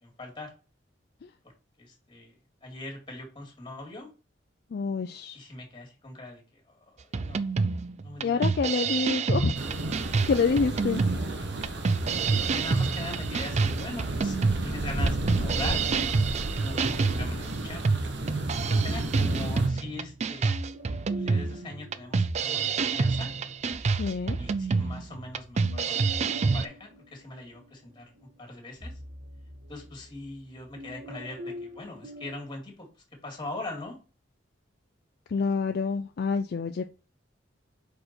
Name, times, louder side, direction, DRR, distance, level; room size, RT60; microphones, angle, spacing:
voice 1, 0.0-0.5 1.4-1.5 1.8-2.3 2.6-4.1 5.3-6.6 6.9-7.5 8.0-8.5 11.1-11.6 12.4-16.2 16.6-17.8 18.7-20.6 21.2-23.3 24.4-26.1 26.5-28.9 29.7-32.9 33.2-34.0, left 2 dB, 25° left, 2.2 m, -41 dB
voice 2, 4.7-5.4 8.2-9.6 10.3-11.0 24.0-24.4 35.3-36.8, left 5 dB, 55° left, 0.4 m, -27 dB
sound 1, 7.1-26.6, right 4 dB, 40° right, 0.4 m, -28 dB
sound 2, 9.5-19.7, right 2 dB, 65° right, 1.0 m, -32 dB
sound 3, 13.9-17.4 18.3-22.8 23.2-32.5, left 1 dB, 85° right, 2.5 m, -46 dB
5.0 x 4.4 x 4.3 m
head